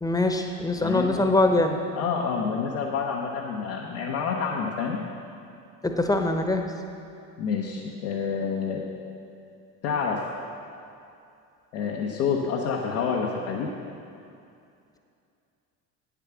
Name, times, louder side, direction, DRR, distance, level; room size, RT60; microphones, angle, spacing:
voice 1, 0.0-1.8 5.8-6.7, left 2 dB, 10° left, 4 dB, 0.9 m, -23 dB
voice 2, 0.8-1.2 1.9-5.0 7.4-8.8 9.8-10.2 11.7-13.7, left 6 dB, 75° left, -2 dB, 1.0 m, -28 dB
9.2 x 7.3 x 6.0 m, 2.5 s
hypercardioid pair, 65°, 45 cm